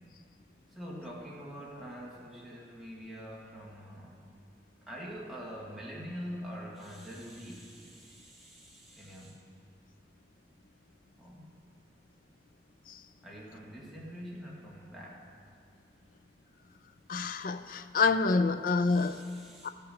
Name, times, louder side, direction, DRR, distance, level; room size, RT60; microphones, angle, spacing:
voice 1, 0.7-4.2 4.8-9.4 11.2-11.6 13.2-15.4 18.9-19.7, equal, ahead, 1.7 m, -45 dB
voice 2, 17.1-19.2 19.6-19.7, left 4 dB, 45° left, 0.4 m, -27 dB
13.5 x 5.8 x 6.9 m
head